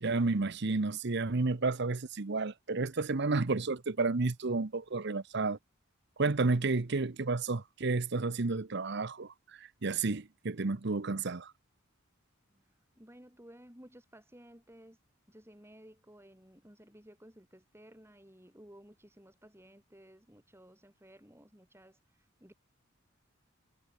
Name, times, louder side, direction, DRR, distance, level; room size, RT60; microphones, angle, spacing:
voice 1, 0.0-5.6 6.2-11.5, right 3 dB, 55° right, 0.9 m, -31 dB
voice 2, 12.5-15.0 15.3-22.5, equal, 10° right, 6.4 m, -56 dB
head